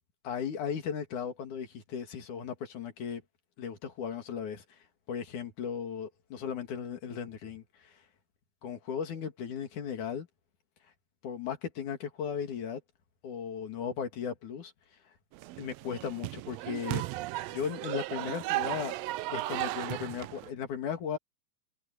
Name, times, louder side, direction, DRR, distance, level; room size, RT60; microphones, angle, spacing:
voice 1, 0.2-3.2 3.6-4.6 5.1-7.6 8.6-10.3 11.2-12.8 13.2-14.7 15.6-17.0 17.5-18.9 19.3-21.2, left 7 dB, 80° left, 3.7 m, -36 dB
sound 1, 15.3-20.5, right 18 dB, 80° right, 1.5 m, -35 dB
omnidirectional pair, 3.5 m